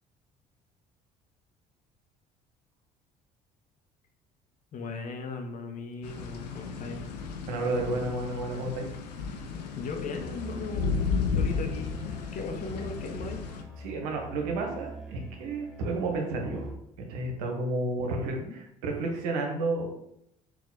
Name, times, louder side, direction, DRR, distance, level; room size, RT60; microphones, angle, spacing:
voice 1, 4.7-7.0 9.8-12.0 12.3-13.4 18.0-18.5, left 4 dB, 40° left, 4 dB, 0.7 m, -38 dB
sound 1, 6.0-13.6, left 5 dB, 80° left, 0.5 m, -33 dB
voice 2, 7.5-8.9 13.8-16.7 17.0-19.9, right 2 dB, 70° right, 2 dB, 0.9 m, -31 dB
Musical instrument, 10.2-17.0, right 3 dB, ahead, 0.9 m, -45 dB
3.9 x 2.4 x 3.9 m, 0.76 s
hypercardioid pair, 55°, 20 cm